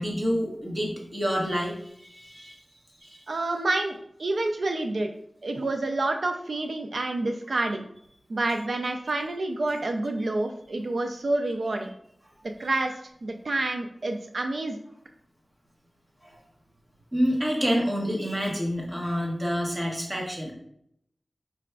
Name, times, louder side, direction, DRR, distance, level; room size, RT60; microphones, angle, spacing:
voice 1, 0.0-3.2 16.2-16.4 17.1-20.5, equal, 30° right, -2 dB, 1.2 m, -28 dB
voice 2, 3.3-5.1 5.4-7.9 8.3-11.9 12.4-14.8, right 2 dB, 75° right, 5 dB, 0.4 m, -28 dB
4.9 x 3.4 x 2.3 m, 0.71 s
wide cardioid pair, 65°, 0 cm